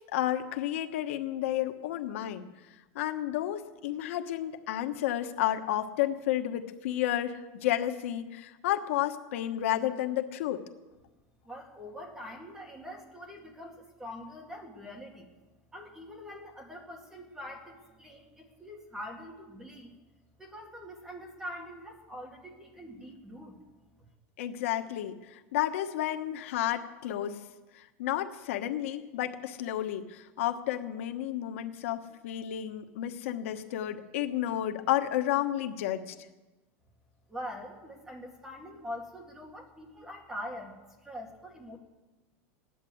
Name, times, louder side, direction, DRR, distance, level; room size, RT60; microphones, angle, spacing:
voice 1, 0.0-2.5 2.9-10.6 24.4-27.4 27.7-36.1, left 12 dB, 85° left, 6 dB, 1.2 m, -31 dB
voice 2, 11.4-15.3 15.7-19.9 20.4-23.6 37.3-40.7 41.0-41.8, equal, 5° right, 1 dB, 2.1 m, -44 dB
17.0 x 10.5 x 7.8 m, 1.1 s
supercardioid pair, 175°, 7 cm